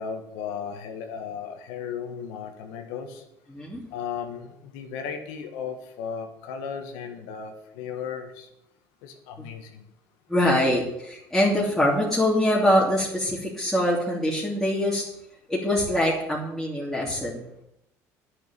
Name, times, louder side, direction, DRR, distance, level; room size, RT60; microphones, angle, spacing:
voice 1, 0.0-3.2 3.9-8.5 9.0-9.7, left 7 dB, 85° left, 5 dB, 1.7 m, -35 dB
voice 2, 3.5-3.8 9.4-9.5 10.3-15.0 15.5-17.4, left 1 dB, 5° left, -6 dB, 3.0 m, -24 dB
9.4 x 6.6 x 8.8 m, 0.81 s
supercardioid pair, 95°, 8 cm